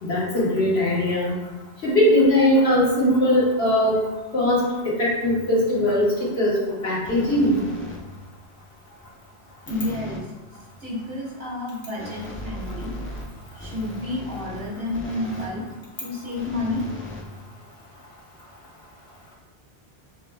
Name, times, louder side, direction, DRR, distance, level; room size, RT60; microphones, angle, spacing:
voice 1, 0.0-1.4 1.8-4.1 4.3-7.6, left 1 dB, 80° left, -7 dB, 1.7 m, -20 dB
sound 1, 7.0-8.3 9.7-10.3 12.0-15.6 16.4-17.8, left 1 dB, 15° left, 0.5 m, -37 dB
voice 2, 9.7-10.2 10.8-13.0 13.5-15.6 16.0-16.9, left 2 dB, 75° right, -6 dB, 1.8 m, -30 dB
6.5 x 3.3 x 2.3 m, 1.1 s
omnidirectional pair, 1.1 m